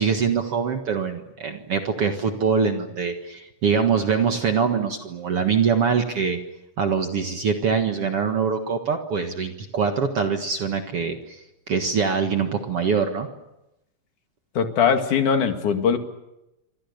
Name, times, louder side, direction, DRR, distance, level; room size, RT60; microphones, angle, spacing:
voice 1, 0.0-6.4 6.8-11.4 11.7-13.3, right 6 dB, 50° right, 5 dB, 2.2 m, -23 dB
voice 2, 14.6-16.0, left 7 dB, 65° left, 6 dB, 3.5 m, -20 dB
28.5 x 25.0 x 6.8 m, 0.92 s
omnidirectional pair, 3.9 m